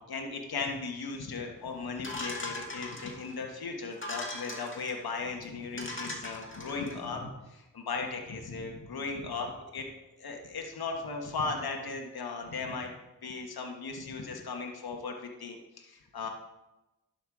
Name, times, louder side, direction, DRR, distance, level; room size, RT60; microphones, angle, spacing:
voice 1, 0.0-9.8 10.2-12.9 13.2-16.3, left 4 dB, 80° left, 2 dB, 1.4 m, -37 dB
sound 1, 2.0-3.3 3.9-4.9 5.4-5.5 5.8-7.0, left 2 dB, 30° left, 2.1 m, -39 dB
11.5 x 5.6 x 4.8 m, 0.97 s
cardioid pair, 50°, 37 cm